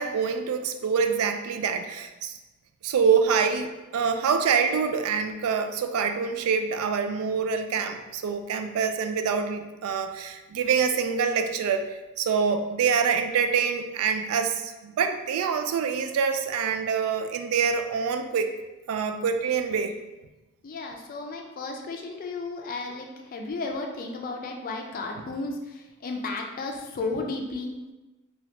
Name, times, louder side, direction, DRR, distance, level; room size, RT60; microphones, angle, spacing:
voice 1, 0.0-2.4 2.8-3.7 3.9-11.9 12.2-18.5 18.9-19.9, right 6 dB, 85° right, 8 dB, 0.3 m, -25 dB
voice 2, 20.6-25.6 26.0-27.7, left 3 dB, 40° left, 2 dB, 0.4 m, -33 dB
3.1 x 2.4 x 2.8 m, 1.1 s
head